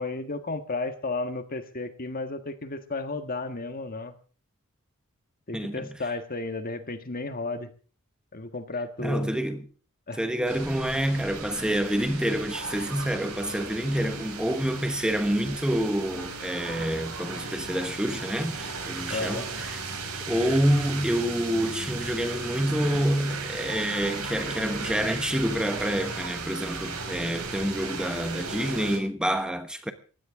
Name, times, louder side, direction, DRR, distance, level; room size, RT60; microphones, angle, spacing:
voice 1, 0.0-4.1 5.5-7.7 8.3-9.3 10.1-10.2 19.1-19.5, left 3 dB, 40° left, 1.6 m, -33 dB
voice 2, 5.5-5.9 9.0-9.6 10.2-19.8 20.2-29.9, equal, 5° right, 1.1 m, -27 dB
sound 1, 10.5-29.0, right 4 dB, 85° right, 6.2 m, -36 dB
20.0 x 16.0 x 3.7 m
head